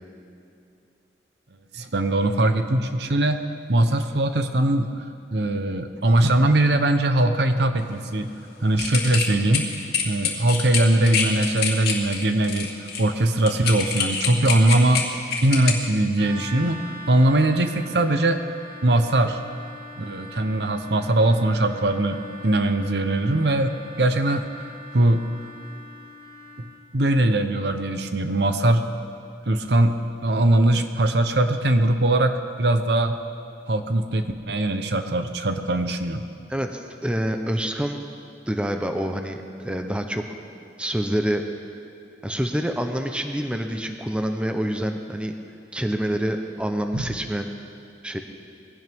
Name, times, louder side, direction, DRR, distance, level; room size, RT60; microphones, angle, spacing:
voice 1, 1.7-3.4 3.7-4.9 5.3-8.3 8.6-9.7 10.0-12.7 13.0-15.1 15.4-18.4 18.8-19.4 20.0-25.3 26.9-28.9 29.5-33.2 33.7-36.2 46.9-47.1, right 1 dB, 65° right, 8 dB, 0.9 m, -21 dB
sound 1, 8.8-15.7, left 6 dB, 55° left, 2.3 m, -26 dB
sound 2, 16.1-26.8, left 1 dB, 25° left, 2.5 m, -42 dB
voice 2, 36.5-38.1 38.5-40.2 40.8-41.4 42.2-45.3 45.7-47.5 48.0-48.2, equal, 5° right, 5 dB, 0.7 m, -27 dB
21.0 x 17.0 x 3.6 m, 2.6 s
head